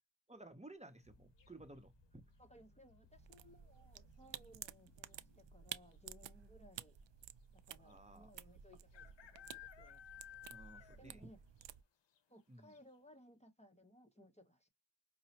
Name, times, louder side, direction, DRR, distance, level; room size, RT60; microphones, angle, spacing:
voice 1, 0.3-2.2 7.8-8.3 10.5-11.2 12.5-12.8, right 2 dB, 15° right, 0.7 m, -56 dB
sound 1, 1.0-7.8, left 2 dB, 55° left, 1.3 m, -70 dB
sound 2, 1.4-1.9 3.7-4.1 4.3-4.4 4.6-5.2 5.9-6.0 6.3-6.4 7.9-8.0 8.9-11.2 11.6-11.7 12.2-12.3 12.7-12.8, left 11 dB, 70° left, 0.7 m, -56 dB
voice 2, 2.4-7.0 7.5-10.0 10.8-11.4 12.3-14.7, equal, 15° left, 0.8 m, -63 dB
sound 3, 3.1-11.8, right 10 dB, 70° right, 0.5 m, -53 dB
5.4 x 2.1 x 2.8 m
cardioid pair, 60°, 45 cm